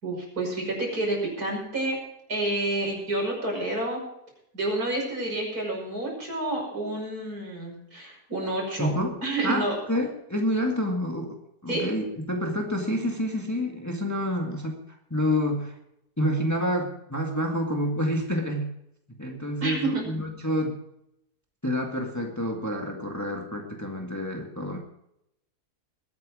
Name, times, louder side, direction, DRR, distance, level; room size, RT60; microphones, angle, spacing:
voice 1, 0.0-2.0 2.3-4.0 4.5-8.9 9.2-9.8 11.7-11.9 19.6-20.2, right 2 dB, 70° right, -1 dB, 6.2 m, -29 dB
voice 2, 8.8-11.4 11.6-14.7 15.1-15.8 16.2-18.7 19.2-20.8 21.6-24.8, equal, 10° left, 1 dB, 1.9 m, -28 dB
21.5 x 9.5 x 4.9 m, 0.80 s
omnidirectional pair, 1.7 m